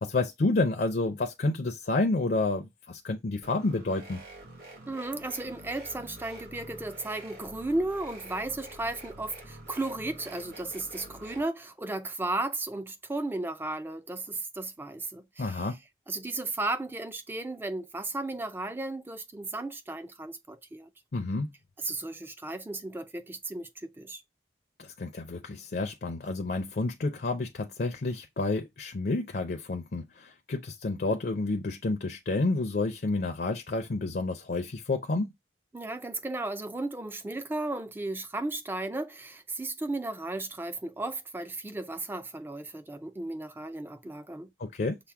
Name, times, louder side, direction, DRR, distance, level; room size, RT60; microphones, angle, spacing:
voice 1, 0.0-4.2 15.4-15.8 21.1-21.5 24.8-35.3 44.6-45.0, left 2 dB, 55° left, 0.5 m, -30 dB
sound 1, 3.4-11.4, right 1 dB, 65° right, 1.5 m, -47 dB
voice 2, 4.9-15.7 16.1-20.9 21.8-24.2 35.7-44.5, right 2 dB, 10° right, 0.4 m, -35 dB
5.8 x 2.1 x 3.5 m
head